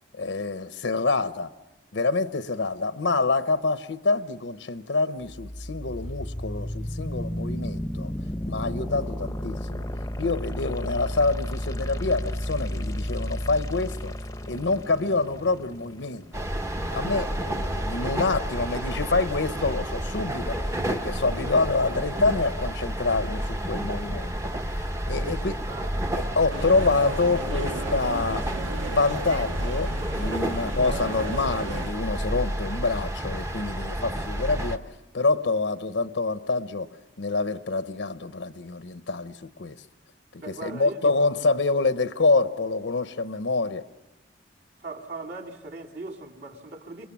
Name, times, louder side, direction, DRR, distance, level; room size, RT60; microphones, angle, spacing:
voice 1, 0.1-1.5 1.9-8.1 8.5-9.8 10.2-14.1 14.5-16.2 16.9-24.3 25.1-25.5 26.1-28.5 28.9-34.8 35.1-36.9 37.2-39.8 40.3-43.8, left 3 dB, 75° left, 0.8 m, -26 dB
sound 1, 5.2-17.2, equal, 15° left, 0.8 m, -33 dB
sound 2, 16.3-34.8, right 1 dB, 15° right, 0.9 m, -30 dB
voice 2, 25.1-25.9 40.4-41.5 44.8-47.1, right 3 dB, 60° right, 3.0 m, -39 dB
sound 3, 26.5-31.9, right 2 dB, 90° right, 1.5 m, -34 dB
28.5 x 21.5 x 7.4 m
head